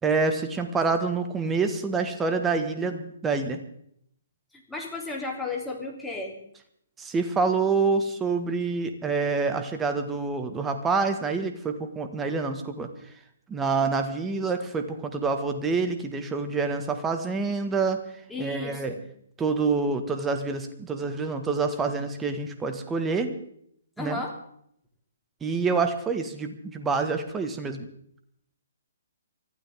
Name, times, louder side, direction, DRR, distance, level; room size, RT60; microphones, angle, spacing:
voice 1, 0.0-3.6 7.0-12.9 13.5-18.0 18.4-19.0 19.4-23.3 24.0-24.2 25.4-27.9, right 4 dB, 10° right, 6 dB, 1.9 m, -27 dB
voice 2, 4.7-6.4 18.3-19.0 24.0-24.3, left 2 dB, 5° left, 0 dB, 3.5 m, -33 dB
24.5 x 15.5 x 3.8 m, 0.69 s
figure-of-eight pair, 130°, 0 cm